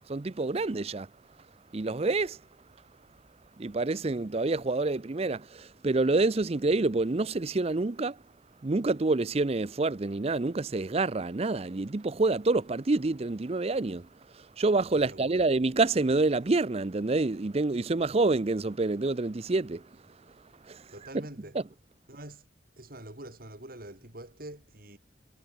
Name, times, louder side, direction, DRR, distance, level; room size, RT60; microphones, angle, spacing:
voice 1, 0.1-1.1 1.7-2.4 3.6-8.2 8.6-14.1 14.6-19.8 20.7-20.8 21.5-21.6, right 3 dB, 35° right, 0.5 m, -27 dB
voice 2, 14.9-15.4 20.9-21.6 22.1-22.5 22.8-25.0, right 1 dB, 50° right, 4.1 m, -45 dB
head